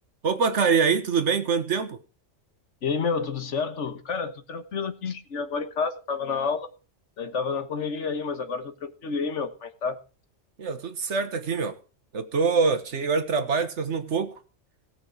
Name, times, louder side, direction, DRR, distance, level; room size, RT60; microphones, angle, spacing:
voice 1, 0.2-2.0 10.6-11.8 12.1-14.3, right 5 dB, 65° right, 1.5 m, -24 dB
voice 2, 2.8-6.7 7.2-10.0, left 5 dB, 70° left, 1.6 m, -29 dB
17.5 x 6.1 x 4.7 m
omnidirectional pair, 1.3 m